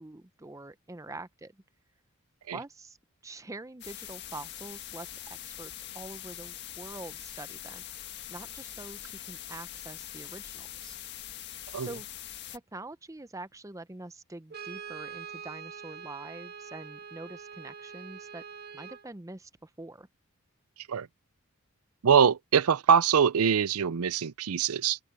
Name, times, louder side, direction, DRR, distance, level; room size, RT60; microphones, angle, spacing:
voice 1, 0.0-1.5 2.5-3.0 3.2-7.9 8.3-11.0 11.8-12.1 12.5-18.4 18.7-20.1, right 2 dB, 15° right, 0.6 m, -45 dB
sound 1, 3.8-12.6, left 11 dB, 50° left, 1.8 m, -43 dB
Brass instrument, 14.5-19.1, right 7 dB, 45° right, 1.8 m, -44 dB
voice 2, 22.0-25.0, right 7 dB, 90° right, 0.5 m, -23 dB
open air
head